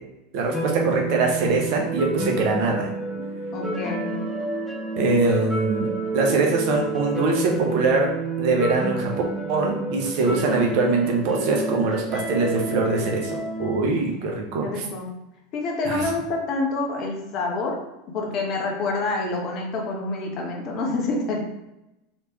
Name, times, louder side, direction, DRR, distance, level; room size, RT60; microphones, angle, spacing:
voice 1, 0.3-2.9 5.0-8.1 8.4-9.1 9.5-14.7 15.9-16.0, right 3 dB, 55° right, 0 dB, 0.7 m, -23 dB
sound 1, 0.5-13.8, right 3 dB, ahead, 0.6 m, -29 dB
voice 2, 3.5-4.2 14.6-15.1 15.5-17.8 18.1-21.4, left 3 dB, 45° left, 0 dB, 0.9 m, -27 dB
3.2 x 3.0 x 2.9 m, 0.92 s
figure-of-eight pair, 85°, 0 cm